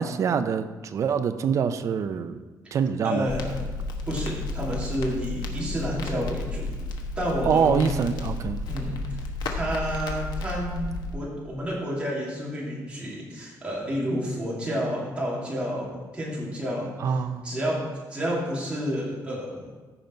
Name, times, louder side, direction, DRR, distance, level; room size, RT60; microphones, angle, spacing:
voice 1, 0.0-2.4 2.7-3.3 7.4-8.6 17.0-17.5, right 7 dB, 50° right, 10 dB, 0.5 m, -25 dB
voice 2, 3.0-3.6 4.0-6.7 7.2-7.9 8.7-9.0 9.5-19.6, equal, 15° right, -5 dB, 2.7 m, -30 dB
Crackle, 3.3-11.1, left 2 dB, 80° left, 1.2 m, -32 dB
14.5 x 5.3 x 4.5 m, 1.4 s
wide cardioid pair, 170°, 7 cm